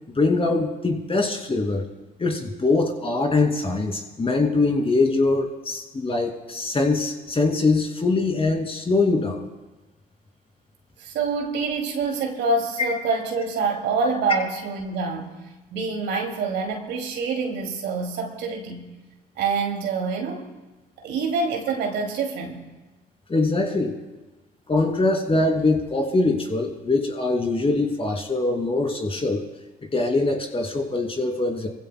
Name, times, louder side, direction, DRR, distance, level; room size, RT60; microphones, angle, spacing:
voice 1, 0.1-1.8 2.2-9.5 23.3-24.0 24.7-29.4 29.9-31.7, left 3 dB, 30° left, 2 dB, 2.6 m, -23 dB
voice 2, 11.0-15.3 15.7-18.8 19.4-20.5 21.0-22.7, right 4 dB, 70° right, 2 dB, 2.5 m, -26 dB
24.0 x 15.5 x 2.2 m, 1.1 s
hypercardioid pair, 55°, 19 cm